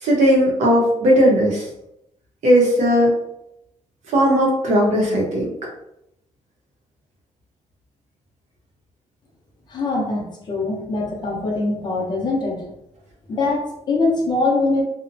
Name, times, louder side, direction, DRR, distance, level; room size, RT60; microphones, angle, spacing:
voice 1, 0.0-1.6 2.4-3.1 4.1-5.5, equal, 75° right, -2 dB, 0.8 m, -17 dB
voice 2, 9.7-12.6 13.3-14.8, left 3 dB, 35° left, -2 dB, 0.6 m, -22 dB
2.6 x 2.0 x 2.6 m, 0.81 s
wide cardioid pair, 175°, 12 cm